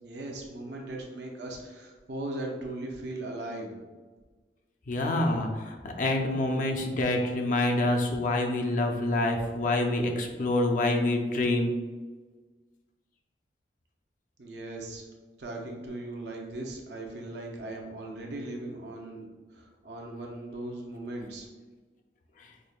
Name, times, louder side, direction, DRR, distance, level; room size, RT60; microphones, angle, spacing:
voice 1, 0.0-3.8 14.4-15.0 15.4-19.3 19.5-21.5, right 2 dB, 70° right, 0 dB, 0.6 m, -38 dB
voice 2, 4.9-11.7, left 2 dB, 45° left, 2 dB, 0.4 m, -27 dB
5.0 x 2.1 x 2.3 m, 1.3 s
head